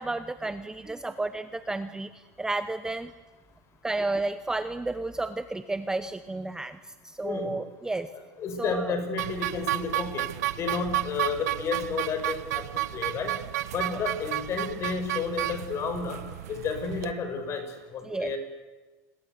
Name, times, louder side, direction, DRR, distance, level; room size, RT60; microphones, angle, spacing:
voice 1, 0.0-3.1 3.8-6.8 7.0-8.1 8.6-9.0 13.9-14.0 18.0-18.3, right 2 dB, 5° right, 11 dB, 0.9 m, -32 dB
voice 2, 7.2-7.5 8.1-10.3 10.6-12.6 12.9-13.4 13.7-16.2 16.5-18.4, left 5 dB, 35° left, 7 dB, 5.8 m, -31 dB
sound 1, 9.2-17.1, right 15 dB, 90° right, 1.1 m, -32 dB
28.5 x 22.0 x 8.1 m, 1.3 s
supercardioid pair, 140°, 8 cm